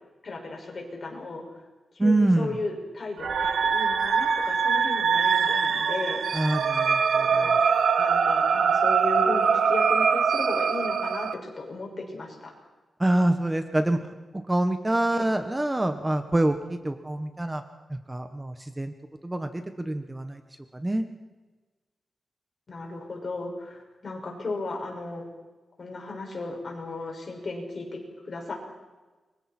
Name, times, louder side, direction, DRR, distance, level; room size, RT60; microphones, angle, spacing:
voice 1, 0.2-1.4 1.9-6.2 7.3-7.5 8.0-12.5 15.1-15.3 22.7-25.2 25.8-28.0 28.2-28.6, left 3 dB, 45° left, 0 dB, 6.0 m, -35 dB
voice 2, 2.0-2.5 6.3-7.6 13.0-14.0 14.3-17.6 17.9-18.9 19.2-20.4 20.7-21.1, right 1 dB, 15° right, 7 dB, 1.3 m, -26 dB
sound 1, 3.2-11.3, right 6 dB, 75° right, 1.3 m, -23 dB
29.5 x 24.5 x 4.4 m, 1.3 s
wide cardioid pair, 110°, 0 cm